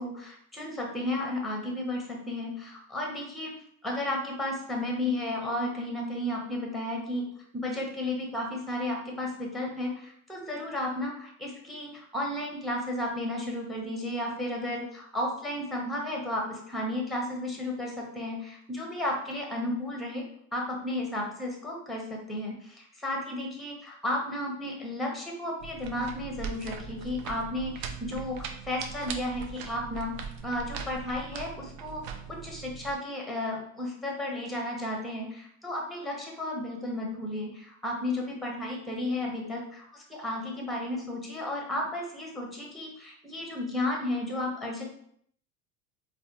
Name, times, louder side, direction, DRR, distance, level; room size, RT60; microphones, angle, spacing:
voice 1, 0.0-3.6 3.8-7.3 7.5-20.2 20.5-32.0 32.3-44.8, left 1 dB, ahead, 0 dB, 0.6 m, -33 dB
sound 1, 25.6-32.9, right 6 dB, 65° right, 0.6 m, -40 dB
4.0 x 2.2 x 2.7 m, 0.67 s
supercardioid pair, 125°, 41 cm